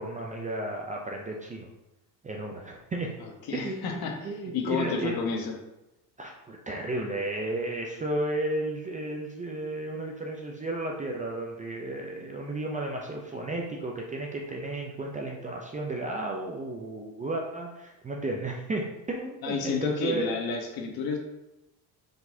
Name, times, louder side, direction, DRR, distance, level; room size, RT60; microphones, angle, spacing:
voice 1, 0.0-1.7 2.2-3.1 3.5-5.2 6.2-20.3, right 2 dB, 20° right, 0 dB, 0.4 m, -33 dB
voice 2, 3.5-5.5 19.4-21.2, left 5 dB, 55° left, 2 dB, 1.0 m, -31 dB
4.7 x 4.0 x 2.7 m, 0.96 s
cardioid pair, 110°, 45 cm